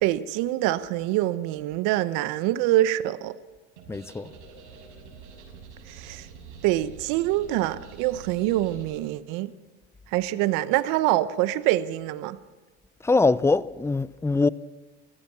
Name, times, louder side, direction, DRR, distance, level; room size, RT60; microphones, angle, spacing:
voice 1, 0.0-3.4 5.9-6.3 6.6-9.5 10.1-12.4, right 15 dB, 65° right, 1.1 m, -25 dB
sound 1, 3.8-8.9, right 5 dB, 90° right, 6.4 m, -46 dB
voice 2, 3.9-4.3 13.0-14.5, left 3 dB, 10° left, 0.5 m, -22 dB
25.0 x 15.5 x 7.2 m
hypercardioid pair, 90°, 34 cm